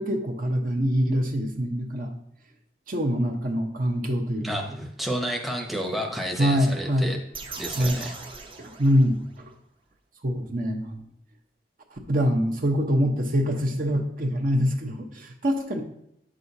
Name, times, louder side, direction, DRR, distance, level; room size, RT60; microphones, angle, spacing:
voice 1, 0.0-2.1 2.9-4.6 6.4-7.1 7.8-8.0 8.6-9.2 10.2-11.0 12.1-15.8, equal, 50° right, 3 dB, 0.9 m, -24 dB
voice 2, 4.4-7.2 7.6-8.2, equal, ahead, 1 dB, 0.8 m, -31 dB
sound 1, 7.3-9.5, right 4 dB, 30° right, 0.7 m, -39 dB
8.6 x 6.3 x 2.7 m, 0.75 s
head